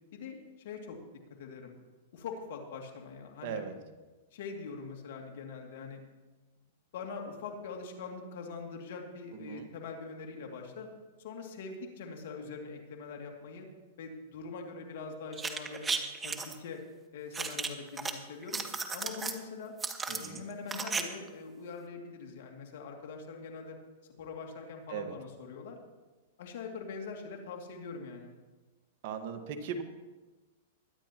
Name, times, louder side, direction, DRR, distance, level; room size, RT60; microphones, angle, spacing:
voice 1, 0.1-1.0 1.4-1.7 2.1-3.7 4.3-6.0 6.9-10.9 11.2-13.7 14.0-15.9 16.2-16.8 17.1-18.6 18.9-19.7 20.1-23.8 24.2-25.8 26.4-28.3, left 4 dB, 65° left, 2 dB, 2.5 m, -43 dB
voice 2, 3.4-3.7 9.4-9.7 20.1-20.4 24.9-25.1 29.0-29.8, right 6 dB, 55° right, 6 dB, 1.6 m, -38 dB
sound 1, 15.3-16.5 17.3-18.1 18.4-19.4 19.8-21.0 21.3-21.4, right 5 dB, 15° right, 1.0 m, -34 dB
22.0 x 10.0 x 3.0 m, 1.2 s
hypercardioid pair, 130°, 0 cm